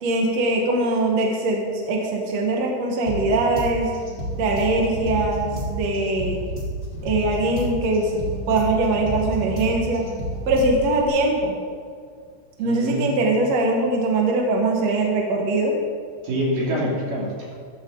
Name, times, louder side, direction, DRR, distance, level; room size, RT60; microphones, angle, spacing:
voice 1, 0.0-3.9 4.4-6.4 7.0-8.2 8.5-10.0 10.5-11.6 12.6-15.7, right 2 dB, 65° right, 0 dB, 1.6 m, -22 dB
sound 1, 3.1-11.1, equal, 30° right, 1.0 m, -30 dB
voice 2, 12.6-13.2 16.2-17.5, equal, 50° right, -4 dB, 3.9 m, -26 dB
13.5 x 12.5 x 3.8 m, 2.1 s
omnidirectional pair, 5.2 m